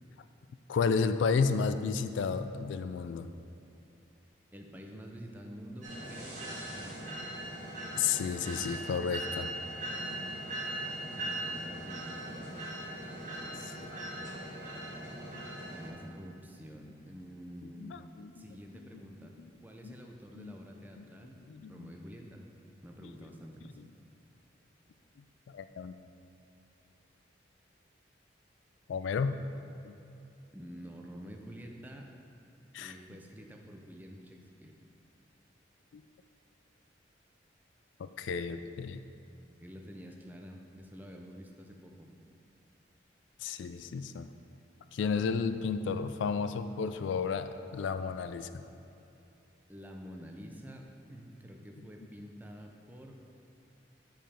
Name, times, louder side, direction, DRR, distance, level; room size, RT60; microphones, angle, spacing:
voice 1, 0.7-3.3 8.0-9.5 13.9-14.0 17.8-18.5 19.8-19.9 20.3-20.6 21.0-21.1 21.5-21.9 25.5-25.9 28.9-29.4 29.8-29.9 32.7-32.9 35.9-36.0 38.0-39.0 43.4-44.3 44.9-48.6, left 5 dB, 75° left, 10 dB, 0.3 m, -32 dB
voice 2, 4.5-7.2 11.2-12.6 13.3-13.9 15.7-18.0 18.3-21.4 21.7-23.8 30.5-32.1 32.8-34.7 39.6-42.1 49.7-53.3, equal, 10° right, 1 dB, 0.5 m, -48 dB
sound 1, 5.8-15.9, right 1 dB, 40° right, 1.6 m, -40 dB
8.9 x 5.1 x 4.3 m, 2.8 s
head